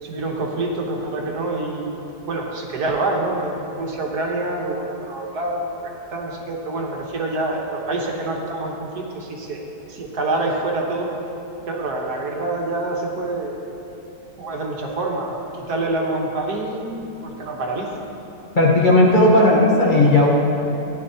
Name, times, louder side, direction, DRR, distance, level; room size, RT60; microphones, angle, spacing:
voice 1, 0.0-2.0 2.3-9.6 9.9-11.1 11.7-13.6 14.4-16.9 17.2-17.9 19.2-19.6, right 2 dB, 70° right, 0 dB, 1.7 m, -26 dB
voice 2, 18.5-20.3, left 2 dB, 35° left, -4 dB, 1.0 m, -14 dB
14.5 x 10.0 x 2.8 m, 2.8 s
omnidirectional pair, 1.7 m